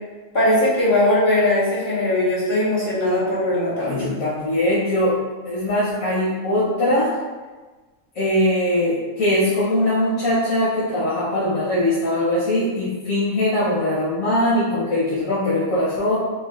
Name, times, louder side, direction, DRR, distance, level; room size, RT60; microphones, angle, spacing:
voice 1, 0.3-4.1, left 1 dB, 35° left, -11 dB, 1.6 m, -20 dB
voice 2, 3.8-5.1 5.5-7.1 8.1-16.2, left 1 dB, 85° left, -10 dB, 1.4 m, -21 dB
5.0 x 2.3 x 2.5 m, 1.3 s
omnidirectional pair, 1.4 m